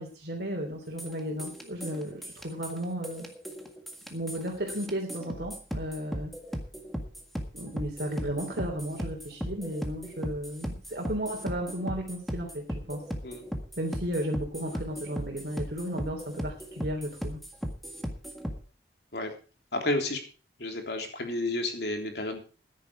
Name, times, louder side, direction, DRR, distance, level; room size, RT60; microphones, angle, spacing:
voice 1, 0.0-3.3 4.0-6.3 7.5-13.0 13.8-17.4, equal, 60° right, 1 dB, 3.1 m, -34 dB
sound 1, 1.0-18.6, equal, ahead, 1.7 m, -38 dB
voice 2, 19.7-20.2 20.6-22.4, left 2 dB, 70° left, 4 dB, 3.3 m, -31 dB
14.5 x 10.5 x 4.8 m, 0.37 s
head